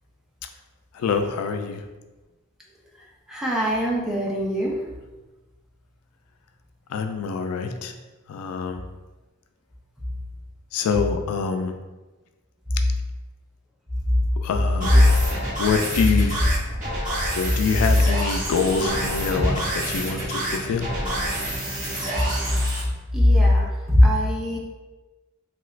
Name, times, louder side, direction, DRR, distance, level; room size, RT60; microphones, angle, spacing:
voice 1, 0.9-1.8 6.9-7.9 8.3-8.8 10.7-11.7 14.4-15.0 15.6-16.4 17.3-20.9, left 5 dB, 85° left, 6 dB, 0.3 m, -25 dB
voice 2, 3.3-4.7 19.4-19.5 23.1-24.6, left 1 dB, ahead, -4 dB, 0.5 m, -20 dB
sound 1, 14.8-22.8, right 1 dB, 40° right, 1.3 m, -28 dB
2.9 x 2.4 x 3.1 m, 1.2 s
head